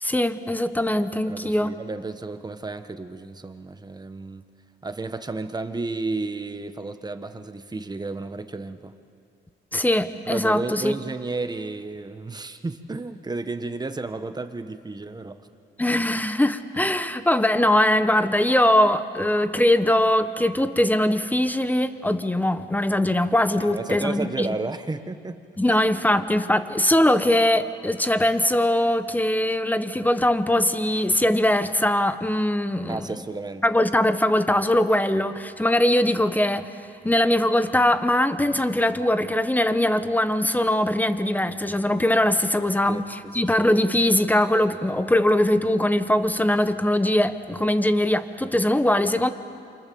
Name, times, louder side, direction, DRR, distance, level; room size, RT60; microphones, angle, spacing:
voice 1, 0.0-1.7 9.7-10.9 15.8-24.5 25.6-33.0 33.6-36.7 37.0-49.3, left 1 dB, 10° left, 11 dB, 1.2 m, -21 dB
voice 2, 1.3-4.4 4.8-8.9 10.2-15.4 23.6-25.4 25.7-25.8 32.9-33.7 42.9-43.0, right 3 dB, 20° right, 9 dB, 1.4 m, -32 dB
28.0 x 25.5 x 7.1 m, 2.4 s
cardioid pair, 90°, 20 cm